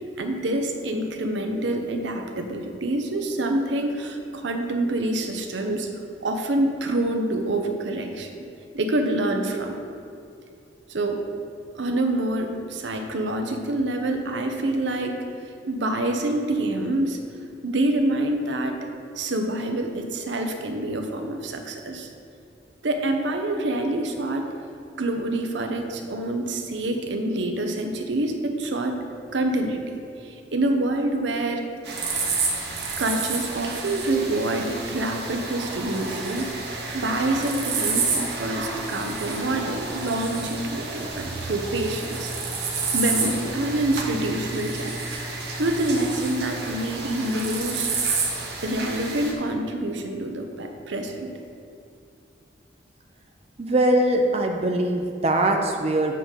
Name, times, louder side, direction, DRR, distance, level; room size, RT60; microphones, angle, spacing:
voice 1, 0.2-5.9 6.2-8.3 8.7-9.8 10.9-11.2 11.8-15.2 15.7-17.2 17.6-18.8 19.2-22.1 22.8-24.5 25.0-29.0 29.3-29.8 30.2-31.6 33.0-36.5 36.9-42.3 42.9-44.9 45.6-47.9 48.6-51.3, right 1 dB, 85° right, 4 dB, 0.7 m, -26 dB
sound 1, 31.8-49.3, right 4 dB, 65° right, 1.1 m, -30 dB
voice 2, 53.6-56.1, right 1 dB, 35° right, 3 dB, 0.5 m, -22 dB
7.7 x 3.7 x 6.4 m, 2.5 s
head